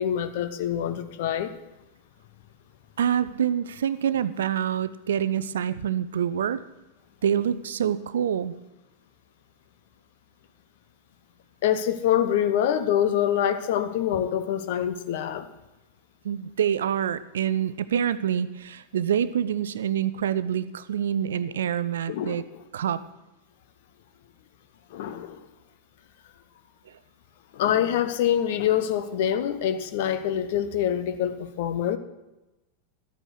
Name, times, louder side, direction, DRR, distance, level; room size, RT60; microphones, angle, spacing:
voice 1, 0.0-1.5 11.6-15.5 22.1-22.4 24.9-25.5 27.5-32.0, left 10 dB, 50° left, 11 dB, 0.9 m, -25 dB
voice 2, 3.0-6.6 7.2-8.5 16.2-22.4 22.7-23.0, right 9 dB, 65° right, 15 dB, 0.5 m, -26 dB
12.5 x 8.9 x 6.4 m, 1.0 s
figure-of-eight pair, 90°, 0 cm